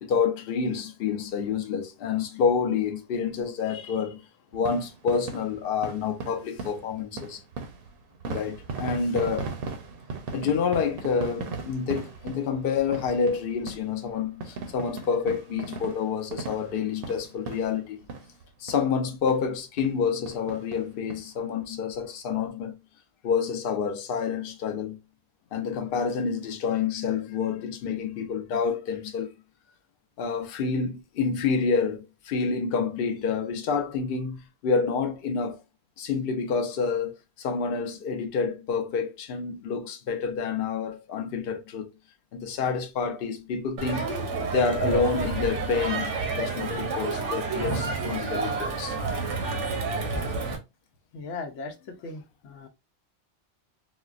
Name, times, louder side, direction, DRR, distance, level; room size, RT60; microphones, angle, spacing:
voice 1, 0.0-4.2 4.5-7.4 8.3-9.5 10.3-18.0 18.6-22.7 23.2-25.0 25.5-29.3 30.2-35.6 36.0-41.9 42.3-44.1 44.5-49.0, left 5 dB, 60° left, 0.7 m, -28 dB
sound 1, 4.5-18.4 18.7-18.9 19.3-19.4 19.8-19.9 20.3-21.2 21.6-21.7 21.9-22.0, right 4 dB, 60° right, 0.7 m, -38 dB
Crowd, 43.8-50.6, right 4 dB, 85° right, 1.1 m, -29 dB
voice 2, 51.1-52.7, left 3 dB, 90° left, 1.0 m, -38 dB
4.0 x 2.0 x 2.4 m
omnidirectional pair, 1.2 m